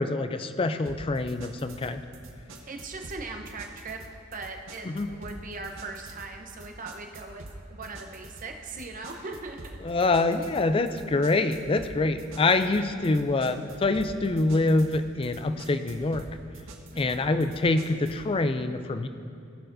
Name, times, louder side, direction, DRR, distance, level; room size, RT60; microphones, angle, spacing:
voice 1, 0.0-2.0 4.8-5.1 9.8-16.2 17.0-19.1, left 2 dB, 25° left, 10 dB, 0.4 m, -25 dB
sound 1, 0.9-18.3, right 2 dB, 70° right, 0.9 m, -46 dB
voice 2, 2.7-4.0 4.3-7.4 7.7-9.6 16.9-17.3, right 3 dB, 40° right, 4 dB, 0.8 m, -39 dB
18.5 x 6.6 x 2.6 m, 2.5 s
head